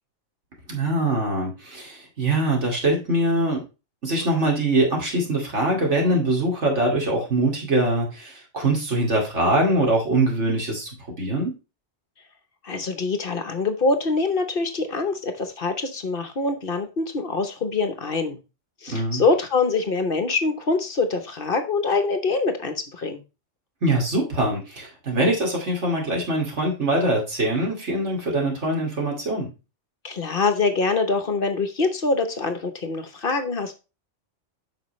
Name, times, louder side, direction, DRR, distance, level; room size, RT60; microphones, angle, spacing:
voice 1, 0.7-3.6 4.0-10.9 11.2-11.5 18.9-19.2 23.8-29.5, right 1 dB, 70° right, 0 dB, 2.8 m, -23 dB
voice 2, 12.6-18.4 18.8-23.2 30.0-33.7, left 3 dB, 50° left, 8 dB, 1.1 m, -24 dB
8.5 x 6.1 x 3.1 m, 0.29 s
omnidirectional pair, 1.2 m